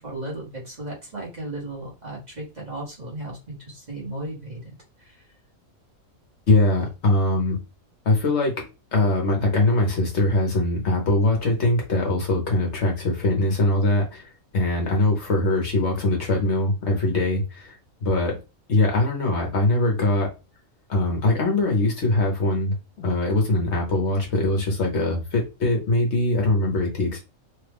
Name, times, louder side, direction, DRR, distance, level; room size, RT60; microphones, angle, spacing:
voice 1, 0.0-4.7 5.0-5.2, right 1 dB, 35° right, -4 dB, 1.2 m, -35 dB
voice 2, 6.5-7.6 8.0-8.5 8.9-17.8 18.0-18.3 18.7-20.3 20.9-27.2, left 2 dB, 55° left, 1 dB, 1.2 m, -22 dB
3.1 x 2.3 x 3.4 m, 0.28 s
omnidirectional pair, 1.5 m